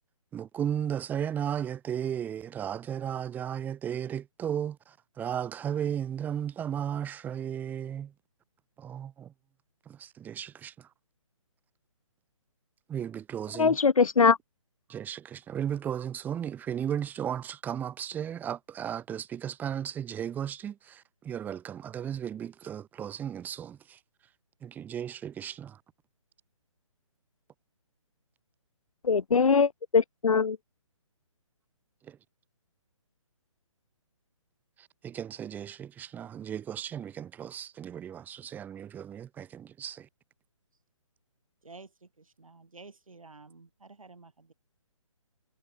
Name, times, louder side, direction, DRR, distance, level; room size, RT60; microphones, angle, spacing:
voice 1, 0.3-8.1 8.8-9.3 9.9-10.7 12.9-13.8 14.9-24.0 24.6-25.8 32.1-32.2 35.0-40.1, right 9 dB, 10° right, 1.1 m, -35 dB
voice 2, 13.6-14.4 29.0-30.6, left 5 dB, 85° left, 0.6 m, -22 dB
voice 3, 41.6-44.5, right 3 dB, 80° right, 4.8 m, -51 dB
figure-of-eight pair, 140°, 17 cm